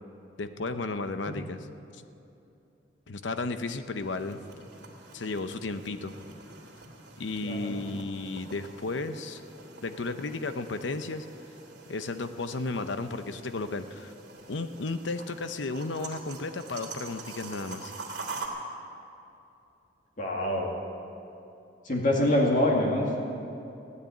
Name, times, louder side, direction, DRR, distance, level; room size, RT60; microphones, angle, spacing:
voice 1, 0.4-1.6 1.9-2.0 3.1-4.4 5.1-6.1 7.2-9.4 9.8-11.3 11.9-14.1 14.5-17.9, left 3 dB, 85° left, 10 dB, 0.7 m, -33 dB
sound 1, 3.7-18.5, right 4 dB, 65° right, 2.6 m, -45 dB
voice 2, 7.4-7.8 20.2-20.7 21.8-23.2, left 1 dB, 45° left, -2 dB, 2.2 m, -25 dB
16.0 x 9.7 x 8.9 m, 2.8 s
head